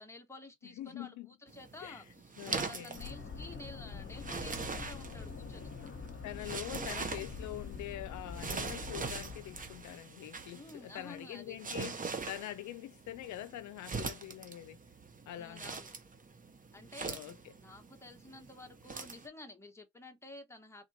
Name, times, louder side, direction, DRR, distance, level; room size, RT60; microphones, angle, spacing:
voice 1, 0.0-5.7 10.5-11.6 15.3-15.9 16.7-17.2 17.6-20.9, left 2 dB, 10° left, 1.2 m, -51 dB
voice 2, 0.6-1.3 1.8-2.0 2.4-3.0 6.2-14.8 15.3-15.8 17.0-17.5, left 13 dB, 70° left, 0.6 m, -44 dB
sound 1, 1.5-19.3, right 4 dB, 25° right, 0.8 m, -43 dB
sound 2, 2.9-10.0, left 5 dB, 40° left, 1.2 m, -45 dB
3.7 x 2.5 x 4.1 m
cardioid pair, 90°, 30 cm